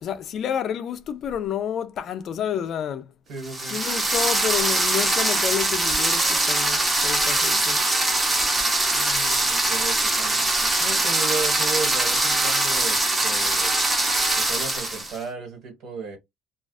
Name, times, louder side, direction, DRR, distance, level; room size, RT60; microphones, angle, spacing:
voice 1, 0.0-3.1 3.7-7.9, left 9 dB, 50° left, 0.4 m, -29 dB
voice 2, 3.3-3.8 8.9-13.7 14.4-16.2, right 4 dB, 55° right, 1.6 m, -34 dB
sound 1, 3.4-15.2, right 2 dB, 15° right, 0.7 m, -22 dB
2.4 x 2.3 x 2.3 m
cardioid pair, 140°, 0 cm